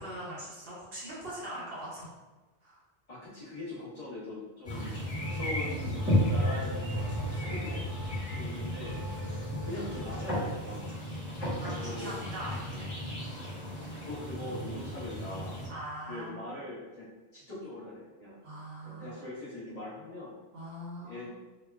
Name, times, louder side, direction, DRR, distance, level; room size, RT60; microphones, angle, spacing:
voice 1, 0.0-2.1 2.6-2.8 7.4-7.8 11.6-12.9 15.7-16.6 18.4-19.2 20.5-21.3, right 1 dB, 65° right, -7 dB, 1.0 m, -42 dB
voice 2, 3.1-7.9 8.3-9.0 9.6-10.8 11.7-12.6 13.3-13.4 13.9-15.6 16.0-18.3 18.8-20.3 21.0-21.3, left 2 dB, 35° left, -12 dB, 1.0 m, -42 dB
sound 1, 4.6-15.7, equal, 5° right, 0.9 m, -33 dB
sound 2, 5.2-10.3, equal, 70° left, 0.8 m, -47 dB
3.1 x 2.1 x 2.2 m, 1.2 s
omnidirectional pair, 1.1 m